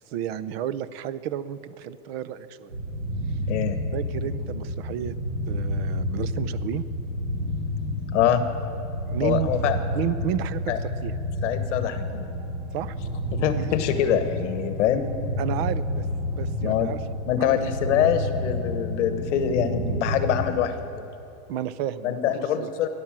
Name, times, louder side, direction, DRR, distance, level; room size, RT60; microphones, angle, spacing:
voice 1, 0.1-2.7 3.9-5.2 5.5-6.8 9.1-9.6 9.9-11.1 12.7-13.0 13.6-13.8 15.4-17.0 17.4-17.9 21.5-22.7, right 10 dB, 50° right, 15 dB, 0.7 m, -32 dB
sound 1, 2.7-20.5, left 1 dB, 85° right, 4.7 m, -30 dB
voice 2, 3.5-3.8 8.1-8.4 9.2-9.8 10.7-10.8 11.4-12.3 13.3-15.1 16.6-16.9 17.3-21.1 22.0-22.9, left 9 dB, 60° left, 9 dB, 1.1 m, -24 dB
sound 2, 11.8-20.6, left 3 dB, 20° right, 2.1 m, -45 dB
17.0 x 11.0 x 7.4 m, 2.8 s
supercardioid pair, 160°, 40 cm